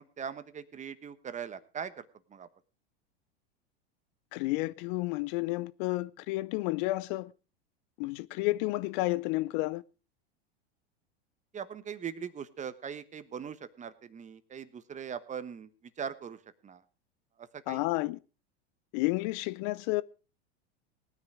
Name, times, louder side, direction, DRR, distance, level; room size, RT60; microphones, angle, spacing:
voice 1, 0.0-2.5 11.5-15.7 16.0-16.8 17.4-17.8, right 7 dB, 25° right, 1.1 m, -41 dB
voice 2, 4.3-7.3 8.0-9.8 17.7-18.2 18.9-20.0, left 20 dB, 55° left, 0.6 m, -31 dB
18.0 x 9.7 x 4.8 m
hypercardioid pair, 105°, 31 cm